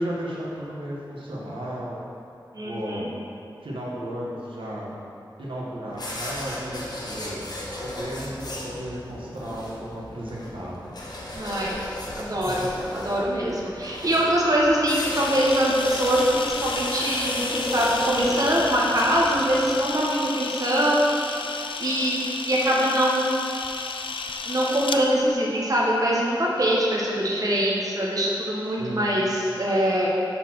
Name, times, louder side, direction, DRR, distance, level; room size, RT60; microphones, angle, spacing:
voice 1, 0.0-2.0 2.6-3.1 3.6-4.9 5.4-7.5 7.8-10.9 12.4-12.7 28.6-29.2, equal, 90° right, -6 dB, 1.3 m, -34 dB
voice 2, 2.5-3.1 11.3-11.8 12.2-21.0 21.8-23.4 24.5-30.1, equal, 45° right, -4 dB, 1.0 m, -23 dB
sound 1, 5.9-19.7, left 1 dB, 55° left, 1.1 m, -35 dB
Camera, 15.1-25.0, left 4 dB, 85° left, 0.4 m, -33 dB
5.7 x 4.1 x 6.1 m, 2.6 s
wide cardioid pair, 85°, 8 cm